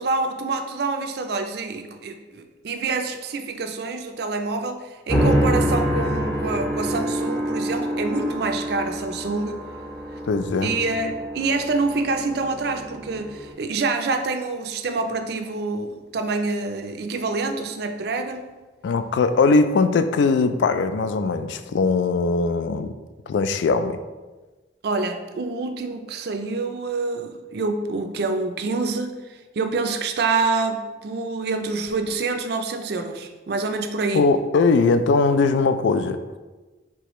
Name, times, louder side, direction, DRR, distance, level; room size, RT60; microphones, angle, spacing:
voice 1, 0.0-9.6 10.6-18.5 24.8-34.3, right 3 dB, 60° right, 6 dB, 0.4 m, -26 dB
sound 1, 5.1-13.5, equal, 5° left, 0.5 m, -26 dB
voice 2, 10.3-10.7 18.8-22.9 23.3-24.0 34.1-36.2, left 4 dB, 80° left, 10 dB, 0.3 m, -20 dB
4.7 x 3.3 x 3.0 m, 1.2 s
head